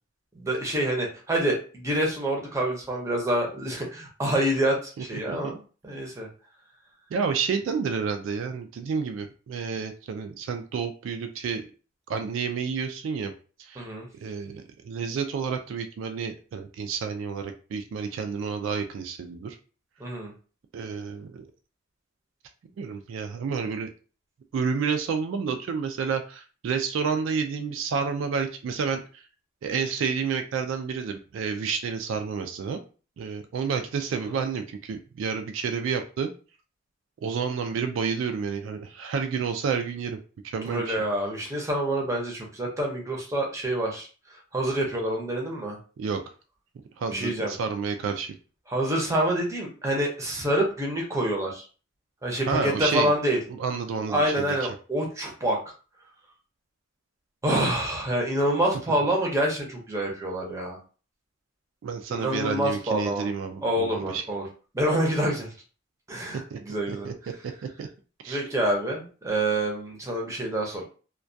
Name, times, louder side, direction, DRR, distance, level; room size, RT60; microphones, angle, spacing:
voice 1, 0.3-5.6 5.8-6.3 13.8-14.1 20.0-20.3 34.2-34.3 40.7-44.1 44.5-45.8 47.1-47.5 48.7-51.7 52.2-53.4 54.1-55.6 57.4-60.8 62.1-63.3 63.6-64.5 64.7-65.5 66.1-67.1 68.3-70.8, right 1 dB, 15° right, -1 dB, 0.6 m, -27 dB
voice 2, 7.1-11.6 12.1-13.3 13.6-13.9 14.2-19.6 20.7-21.5 22.8-23.9 24.5-29.3 29.6-32.8 33.2-36.3 37.2-40.2 40.4-41.0 46.0-46.2 47.0-48.3 52.5-53.1 53.6-54.6 61.8-64.2 66.5-66.6 66.9-67.1 67.8-67.9 68.2-68.4, right 5 dB, 75° right, 7 dB, 0.3 m, -30 dB
2.2 x 2.2 x 2.6 m, 0.37 s
head